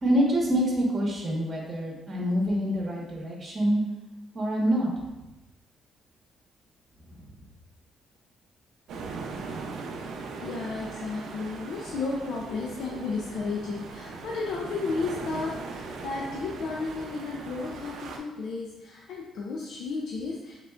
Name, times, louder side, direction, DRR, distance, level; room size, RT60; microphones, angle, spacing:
voice 1, 0.0-3.8 4.3-4.9 7.2-7.3, equal, 40° right, -2 dB, 1.4 m, -26 dB
sound 1, 8.9-18.2, right 4 dB, 80° right, 0.5 m, -39 dB
voice 2, 10.4-20.6, left 4 dB, 80° left, -3 dB, 0.6 m, -33 dB
5.0 x 4.0 x 2.4 m, 1.0 s
cardioid pair, 90°, 0 cm